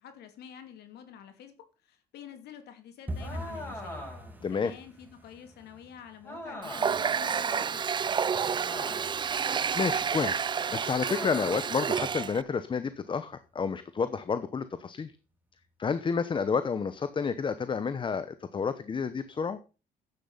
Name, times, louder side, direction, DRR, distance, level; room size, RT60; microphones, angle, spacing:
voice 1, 0.0-4.1 4.5-7.9, left 9 dB, 75° left, 7 dB, 2.7 m, -48 dB
sound 1, 3.1-13.8 14.0-14.8 15.0-15.3 15.6-16.0 16.2-16.4 16.9-17.4 17.7-17.8 18.3-18.4, equal, 10° right, 2.3 m, -47 dB
sound 2, 3.2-4.4 6.2-7.1 8.6-9.3 11.0-11.8, left 1 dB, 15° left, 6.2 m, -41 dB
voice 2, 4.4-4.7 9.2-9.4 9.7-15.1 15.8-19.6, left 5 dB, 30° left, 13 dB, 0.9 m, -30 dB
Water tap faucet, 6.6-12.4, right 7 dB, 25° right, 0.5 m, -30 dB
10.5 x 8.5 x 5.6 m, 0.34 s
cardioid pair, 110°, 17 cm